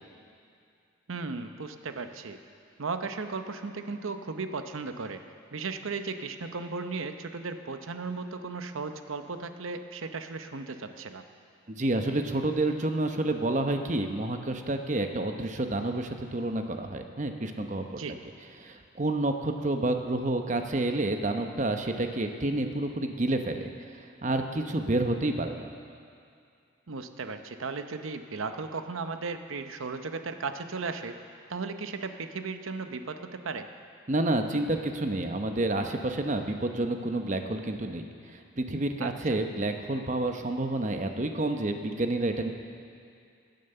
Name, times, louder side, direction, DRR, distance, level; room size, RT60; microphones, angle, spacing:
voice 1, 1.1-2.4 2.8-5.2 5.5-11.2 17.9-18.2 26.9-31.2 31.5-33.7 39.0-39.4, right 4 dB, 85° right, 8 dB, 0.8 m, -36 dB
voice 2, 11.7-18.0 18.6-23.7 24.2-25.7 34.1-42.5, right 2 dB, 35° right, 5 dB, 0.8 m, -29 dB
16.5 x 9.3 x 6.7 m, 2.4 s
head